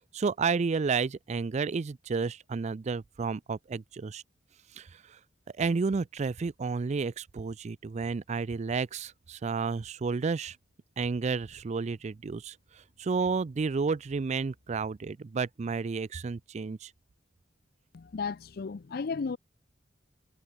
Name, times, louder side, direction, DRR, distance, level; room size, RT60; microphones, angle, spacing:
voice 1, 0.1-4.2 4.7-5.2 5.6-10.6 11.0-16.9, right 4 dB, 40° right, 0.4 m, -31 dB
sound 1, 7.8-11.9 12.4-14.9, equal, 85° right, 5.6 m, -71 dB
voice 2, 17.9-19.4, left 5 dB, 55° left, 0.5 m, -34 dB
head